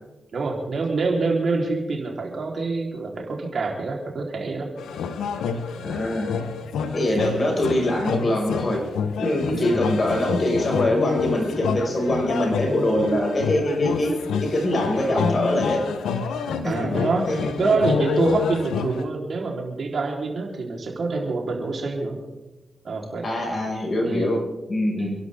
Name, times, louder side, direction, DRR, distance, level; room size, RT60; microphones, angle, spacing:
voice 1, 0.3-4.7 9.5-9.8 16.6-17.3 17.6-22.2 22.8-23.3 24.0-24.3 24.9-25.1, right 3 dB, 65° right, 0 dB, 4.1 m, -26 dB
sound 1, 4.8-19.0, left 6 dB, 85° left, 1.1 m, -28 dB
voice 2, 5.8-6.4 6.9-8.8 9.2-14.1 14.4-15.8 16.6-16.9 17.3-17.7 23.2-24.4 24.7-25.2, left 1 dB, 45° left, 0 dB, 6.1 m, -23 dB
29.0 x 11.5 x 3.8 m, 1.0 s
supercardioid pair, 40°, 0 cm